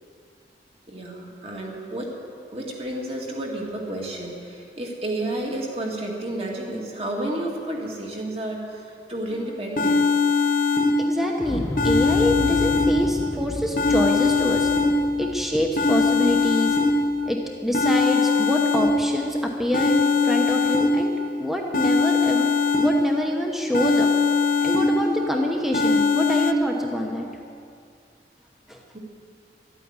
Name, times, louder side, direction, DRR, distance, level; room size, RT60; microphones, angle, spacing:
voice 1, 0.9-2.1 2.5-10.1 28.9-29.0, right 1 dB, 35° right, -1 dB, 2.2 m, -31 dB
sound 1, 9.3-9.4 9.8-11.3 11.8-13.3 13.8-15.3 15.8-17.3 17.7-19.3 19.7-21.3 21.7-23.3 23.7-25.3 25.7-26.5, left 4 dB, 45° left, 0.7 m, -21 dB
voice 2, 11.0-14.7 15.2-16.8 17.3-21.1 21.4-22.5 22.8-24.1 24.6-27.3 28.7-28.8, equal, ahead, 0 dB, 1.0 m, -26 dB
Explosion, 11.4-17.4 17.7-17.8, left 1 dB, 15° left, 0.3 m, -33 dB
13.0 x 9.2 x 9.6 m, 2.3 s
head